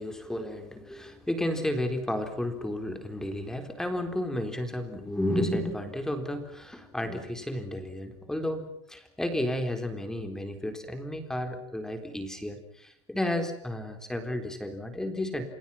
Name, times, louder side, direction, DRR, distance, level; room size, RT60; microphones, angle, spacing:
voice 1, 0.0-15.4, left 1 dB, 5° left, 7 dB, 4.0 m, -32 dB
29.5 x 29.5 x 5.9 m, 0.69 s
cardioid pair, 165°, 14 cm